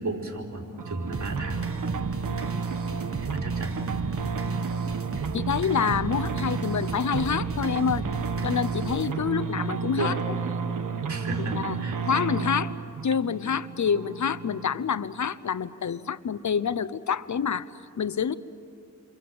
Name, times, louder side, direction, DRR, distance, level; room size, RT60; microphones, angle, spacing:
voice 1, 0.0-1.6 3.3-3.7 10.0-10.1 11.1-12.0, right 2 dB, 60° right, -1 dB, 4.4 m, -33 dB
sound 1, 0.8-14.9, right 5 dB, 90° right, 1.2 m, -31 dB
sound 2, 1.1-9.1, right 3 dB, 45° right, 1.6 m, -36 dB
voice 2, 5.3-8.0 8.4-10.3 11.5-11.8 12.1-12.7 13.0-17.7 18.0-18.3, left 7 dB, 65° left, 16 dB, 0.8 m, -27 dB
29.0 x 24.5 x 7.8 m, 2.6 s
cardioid pair, 55°, 31 cm